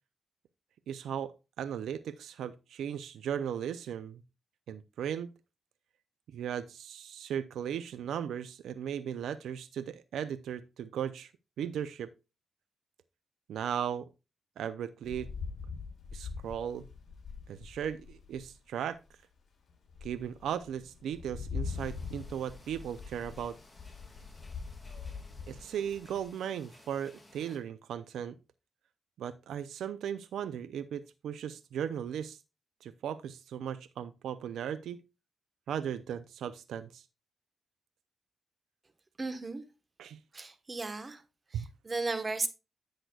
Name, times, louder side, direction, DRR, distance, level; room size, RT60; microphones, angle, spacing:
voice 1, 0.9-4.2 4.7-5.3 6.3-11.3 11.6-12.1 13.5-14.1 14.6-15.3 16.1-16.8 17.5-19.0 20.0-23.6 25.5-28.4 29.2-32.4 32.8-35.0 35.7-37.0 40.0-40.2 41.5-41.6, right 9 dB, 90° right, 0.4 m, -37 dB
Rain, 15.0-18.6 19.1-19.2 19.7-26.3, left 5 dB, 60° left, 3.8 m, -43 dB
sound 1, 21.6-27.6, left 1 dB, 10° left, 2.3 m, -58 dB
voice 2, 39.2-39.6 40.3-41.2 41.5-42.5, right 3 dB, 30° right, 1.2 m, -35 dB
10.5 x 7.9 x 2.3 m
cardioid pair, 85°, 0 cm